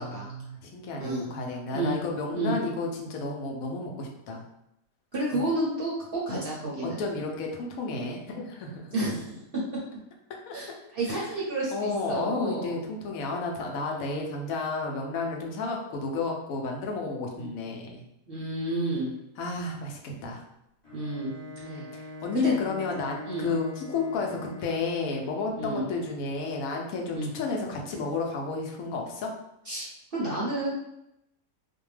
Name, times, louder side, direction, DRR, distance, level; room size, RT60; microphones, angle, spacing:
voice 1, 0.0-4.4 5.3-5.4 6.8-8.8 10.5-10.6 11.1-11.3 11.7-18.0 19.4-20.4 21.6-29.3, left 3 dB, 75° left, 1 dB, 1.0 m, -32 dB
voice 2, 5.1-7.0 8.9-9.4 10.5-12.8 13.8-14.1 17.3-17.5 18.3-19.1 20.9-21.3 21.6-21.9 22.3-22.5 23.2-23.5 25.6-25.8 27.1-27.3 29.6-30.7, right 2 dB, 55° right, -6 dB, 0.6 m, -31 dB
Bowed string instrument, 20.8-25.0, left 2 dB, 30° left, 0.6 m, -42 dB
2.6 x 2.1 x 3.1 m, 0.84 s
omnidirectional pair, 1.5 m